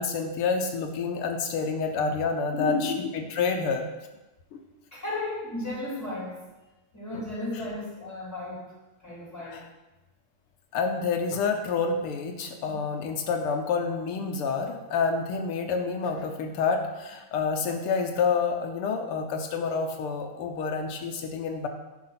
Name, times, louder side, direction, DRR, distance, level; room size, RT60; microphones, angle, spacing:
voice 1, 0.0-3.9 4.5-4.6 7.1-7.2 9.5-9.6 10.7-21.7, left 5 dB, 85° left, 4 dB, 1.7 m, -28 dB
voice 2, 2.5-3.1 4.9-6.4 6.9-8.6 9.0-9.7, left 2 dB, 5° left, -5 dB, 3.4 m, -33 dB
10.5 x 5.7 x 5.8 m, 1.1 s
omnidirectional pair, 2.4 m